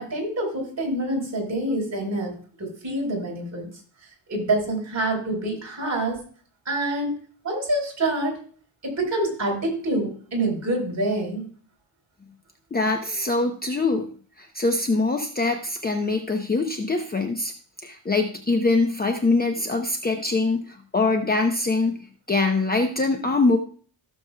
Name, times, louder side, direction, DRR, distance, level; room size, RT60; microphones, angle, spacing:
voice 1, 0.0-3.7 4.3-6.2 6.7-7.2 7.4-8.3 8.8-11.4, right 1 dB, 35° right, -1 dB, 4.3 m, -26 dB
voice 2, 12.7-14.1 14.4-17.5 17.8-23.6, left 3 dB, 20° left, 4 dB, 0.8 m, -23 dB
16.0 x 7.1 x 2.3 m, 0.43 s
wide cardioid pair, 140°, 46 cm